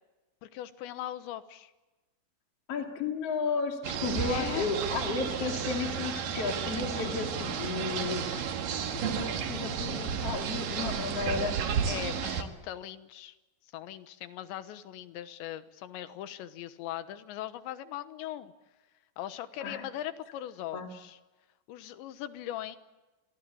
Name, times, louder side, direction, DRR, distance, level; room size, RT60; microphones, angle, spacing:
voice 1, 0.4-1.7 4.3-4.7 11.9-13.4 13.7-18.5 19.2-21.2 21.7-22.8, left 12 dB, 90° left, 11 dB, 3.5 m, -40 dB
voice 2, 2.7-8.5 8.9-11.7 12.2-12.4 19.6-19.8 20.7-20.9, left 4 dB, 40° left, 3 dB, 3.2 m, -33 dB
sound 1, 3.8-12.4, right 7 dB, 60° right, 3.2 m, -32 dB
27.5 x 23.5 x 8.5 m, 1.1 s
omnidirectional pair, 5.0 m